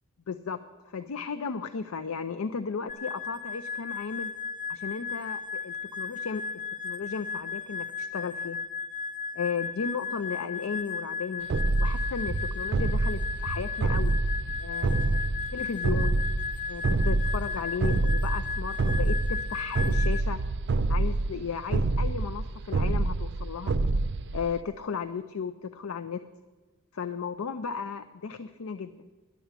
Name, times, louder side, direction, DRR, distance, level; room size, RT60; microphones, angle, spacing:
voice 1, 0.3-4.3 4.7-6.4 6.8-8.6 9.3-11.5 11.8-14.2 14.6-16.2 16.7-20.4 20.9-23.7 24.3-26.2 26.9-29.1, left 5 dB, 90° left, 9 dB, 0.5 m, -35 dB
sound 1, 2.9-20.2, left 6 dB, 40° left, 0.7 m, -35 dB
sound 2, 11.5-24.6, right 2 dB, 55° right, 0.5 m, -27 dB
11.5 x 7.0 x 8.8 m, 1.3 s
head